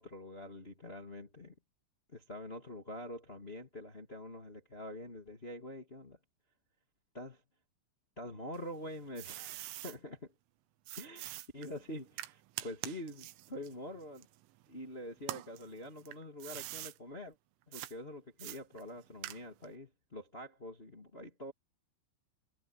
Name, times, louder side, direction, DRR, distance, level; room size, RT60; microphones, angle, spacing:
voice 1, 0.0-1.5 2.1-6.2 7.1-7.4 8.2-10.3 10.9-14.3 14.7-17.3 17.7-21.5, left 1 dB, 55° left, 0.6 m, -46 dB
sound 1, 8.5-10.0 10.9-14.8 15.2-17.0 17.7-17.9 18.4-19.7, right 16 dB, 75° right, 3.4 m, -45 dB
omnidirectional pair, 6.0 m